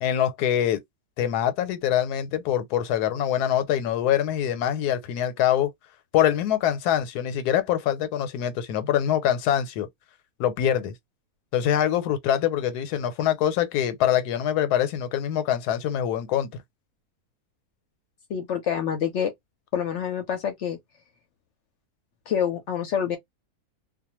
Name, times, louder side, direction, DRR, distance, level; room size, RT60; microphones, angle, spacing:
voice 1, 0.0-0.8 1.2-5.7 6.1-9.9 10.4-10.9 11.5-16.5, left 10 dB, 90° left, 1.1 m, -24 dB
voice 2, 18.3-19.3 19.7-20.8 22.3-23.2, left 8 dB, 70° left, 0.7 m, -27 dB
2.4 x 2.2 x 2.9 m
omnidirectional pair, 1.6 m